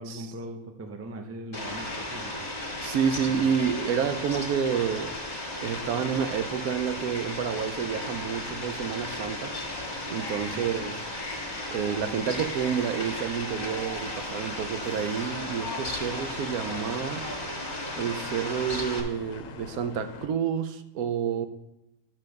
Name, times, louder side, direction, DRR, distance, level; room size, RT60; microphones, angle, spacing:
voice 1, 0.0-2.3 10.5-10.7, right 1 dB, 15° right, 0.5 m, -40 dB
Fowl, 1.5-19.0, left 1 dB, 40° left, 1.7 m, -35 dB
voice 2, 2.8-5.2 5.6-9.5 10.1-11.1 11.7-17.2 18.0-21.5, right 7 dB, 80° right, 1.1 m, -29 dB
sound 1, 8.4-20.3, left 8 dB, 70° left, 1.0 m, -50 dB
10.5 x 3.7 x 6.5 m
omnidirectional pair, 1.5 m